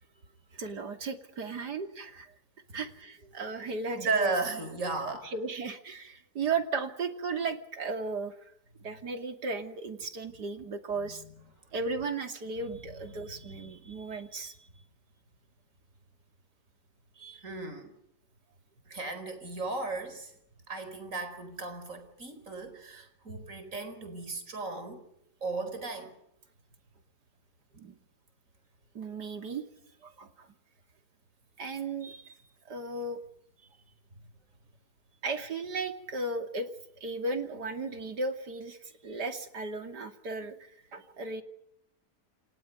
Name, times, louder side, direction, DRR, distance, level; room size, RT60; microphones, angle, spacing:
voice 1, 0.5-2.3 2.7-4.4 5.1-8.5 8.8-11.2 11.7-14.6 27.7-28.0 28.9-29.6 30.0-30.5 31.6-32.4 32.7-33.2 35.2-36.7 37.0-41.4, right 3 dB, 80° right, 3.2 m, -35 dB
voice 2, 4.0-5.3 11.0-11.3 13.1-13.2 13.5-13.9 17.2-17.9 18.9-20.3 20.7-25.0 25.4-26.1, right 3 dB, 50° right, 5.0 m, -35 dB
29.0 x 28.5 x 5.4 m
omnidirectional pair, 1.7 m